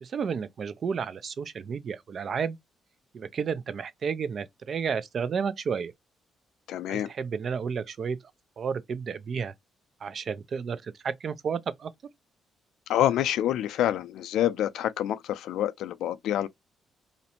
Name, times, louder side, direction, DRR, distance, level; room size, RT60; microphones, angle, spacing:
voice 1, 0.0-2.6 3.1-5.9 6.9-8.2 8.6-9.5 10.0-11.9, right 6 dB, 50° right, 0.4 m, -32 dB
voice 2, 6.7-7.1 12.9-16.5, left 11 dB, 80° left, 0.3 m, -27 dB
2.5 x 2.1 x 2.8 m
cardioid pair, 90°, 0 cm